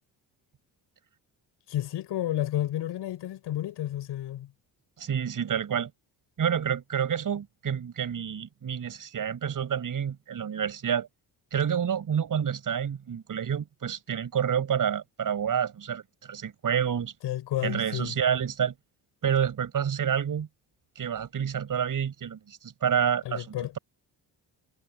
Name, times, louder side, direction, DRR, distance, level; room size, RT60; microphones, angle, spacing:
voice 1, 1.7-4.5 17.2-18.2 23.2-23.8, left 12 dB, 75° left, 7.1 m, -31 dB
voice 2, 5.0-5.9 6.4-11.1 11.5-17.1 17.6-18.7 19.2-20.5 20.9-23.8, right 8 dB, 50° right, 6.9 m, -28 dB
cardioid pair, 105°, 42 cm